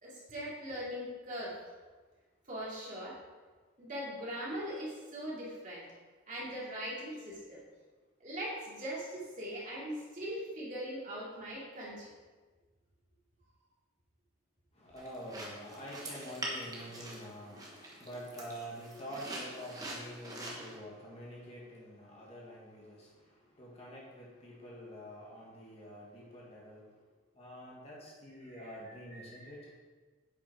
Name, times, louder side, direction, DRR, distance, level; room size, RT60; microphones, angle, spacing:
voice 1, 0.0-1.6 2.5-3.2 3.8-5.8 6.3-7.6 8.2-12.1 28.4-28.8 29.1-29.5, equal, 40° right, -6 dB, 2.4 m, -41 dB
voice 2, 14.7-26.9 27.3-29.7, equal, 30° left, -4 dB, 1.7 m, -47 dB
sound 1, 15.0-20.8, right 1 dB, 20° right, 1.3 m, -44 dB
8.1 x 5.7 x 4.8 m, 1.4 s
head